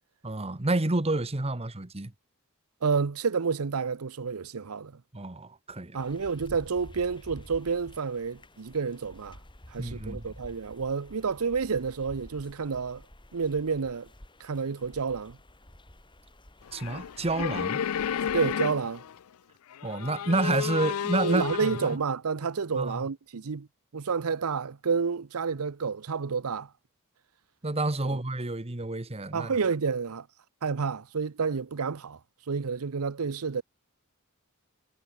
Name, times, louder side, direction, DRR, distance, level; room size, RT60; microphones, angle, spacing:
voice 1, 0.2-2.1 5.1-6.0 9.8-10.3 16.7-17.8 19.8-22.0 22.7-23.1 27.6-29.5, right 2 dB, 30° right, 1.2 m, -29 dB
voice 2, 2.8-4.9 5.9-9.4 9.7-13.0 13.3-14.1 14.4-15.4 18.3-19.0 21.2-23.7 23.9-26.7 29.3-30.3 30.6-32.2 32.5-33.6, right 5 dB, 90° right, 0.7 m, -29 dB
sound 1, 6.0-18.6, left 1 dB, 20° left, 3.0 m, -50 dB
sound 2, 16.7-19.2 19.7-22.0, left 8 dB, 85° left, 0.4 m, -32 dB
head